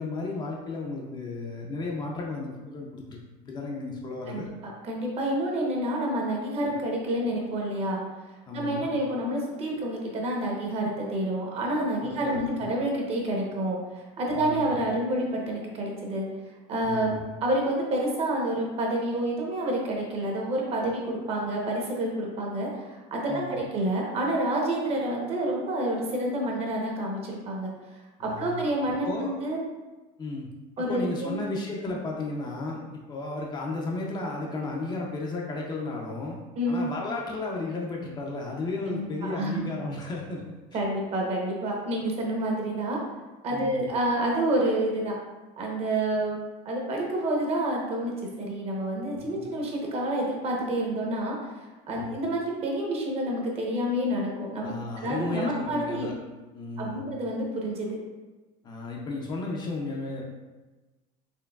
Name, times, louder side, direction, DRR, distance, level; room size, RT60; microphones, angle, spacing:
voice 1, 0.0-4.5 6.7-6.8 8.5-8.9 12.0-12.6 14.3-14.6 16.8-17.2 23.3-23.6 28.2-28.6 29.0-29.3 30.2-30.5 30.9-36.4 36.7-40.4 40.7-40.8 43.5-43.9 49.2-49.5 51.9-52.2 54.6-56.1 56.5-57.0 58.6-60.2, left 3 dB, 25° left, -1 dB, 0.5 m, -34 dB
voice 2, 4.3-8.0 8.5-16.2 16.7-27.7 28.2-29.6 30.8-31.4 31.8-31.9 36.6-36.9 38.9-39.7 40.7-43.0 43.4-45.2 45.6-46.4 46.6-56.1 56.8-57.9, right 1 dB, 40° right, -1 dB, 0.8 m, -28 dB
4.4 x 3.1 x 2.3 m, 1.2 s
cardioid pair, 150°, 16 cm